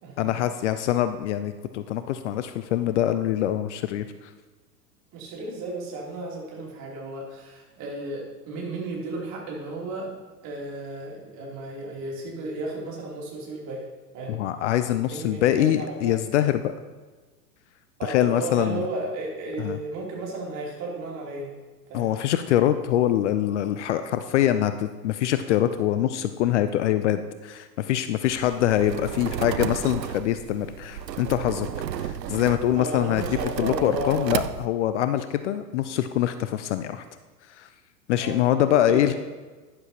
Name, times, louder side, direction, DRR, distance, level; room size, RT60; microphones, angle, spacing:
voice 1, 0.2-4.0 14.3-16.7 18.1-18.8 19.6-19.8 21.9-31.7 32.0-33.2 33.6-37.0 37.6-37.7 38.1-39.2, left 12 dB, 45° left, 11 dB, 0.6 m, -24 dB
voice 2, 5.1-10.1 10.4-13.9 14.1-14.4 15.0-16.1 18.0-21.5 21.9-22.1 32.8-34.3 38.2-38.4 38.9-39.2, right 2 dB, 35° right, -3 dB, 3.3 m, -34 dB
sound 1, 28.3-34.7, right 9 dB, 85° right, 0.6 m, -33 dB
12.0 x 10.5 x 2.9 m, 1.3 s
figure-of-eight pair, 100°, 49 cm